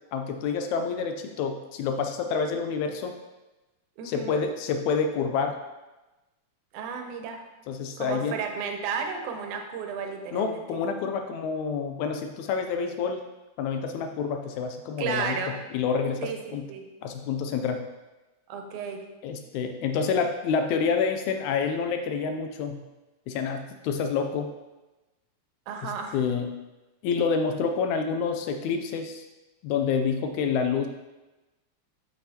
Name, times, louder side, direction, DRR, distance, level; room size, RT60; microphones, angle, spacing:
voice 1, 0.1-3.2 4.1-5.6 7.7-8.4 10.3-13.3 13.6-15.4 15.7-16.7 17.0-17.8 19.2-22.8 23.3-24.5 25.8-26.5 27.0-29.2 29.6-30.9, left 5 dB, 80° left, 6 dB, 1.9 m, -28 dB
voice 2, 4.0-4.4 6.7-7.5 8.0-10.8 15.0-15.7 16.2-16.9 18.5-19.1 25.7-26.2, right 6 dB, 80° right, 5 dB, 2.2 m, -33 dB
7.8 x 5.7 x 2.8 m, 1.1 s
omnidirectional pair, 3.5 m